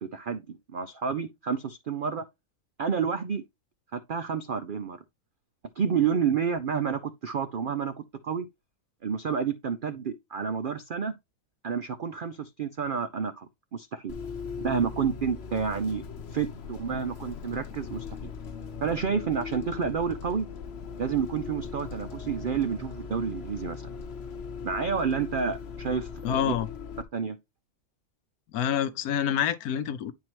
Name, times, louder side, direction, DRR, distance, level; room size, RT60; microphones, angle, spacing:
voice 1, 0.0-2.2 2.8-3.4 3.9-5.0 5.8-7.9 8.2-8.5 9.0-11.1 11.6-14.1 14.6-16.0 16.3-18.1 18.8-20.5 21.0-23.8 24.6-26.5 27.1-27.4, right 6 dB, 65° right, 0.5 m, -29 dB
Bus, 14.1-27.0, left 6 dB, 50° left, 1.0 m, -39 dB
voice 2, 26.2-26.7 28.5-30.1, left 9 dB, 90° left, 1.2 m, -27 dB
9.3 x 4.7 x 2.9 m
omnidirectional pair, 1.6 m